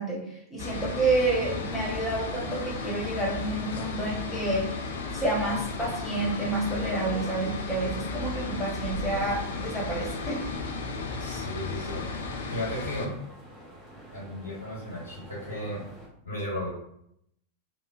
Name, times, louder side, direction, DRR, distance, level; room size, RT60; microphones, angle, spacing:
voice 1, 0.0-4.8 5.1-10.5, right 2 dB, 5° left, -5 dB, 1.0 m, -29 dB
sound 1, 0.6-13.1, left 3 dB, 60° left, 0.4 m, -34 dB
sound 2, 1.7-16.1, right 1 dB, 20° right, 0.8 m, -47 dB
voice 2, 11.2-12.1 12.5-13.2 14.1-15.8 16.2-16.7, left 1 dB, 80° left, -8 dB, 0.9 m, -35 dB
3.1 x 2.1 x 2.4 m, 0.74 s
figure-of-eight pair, 90°, 0 cm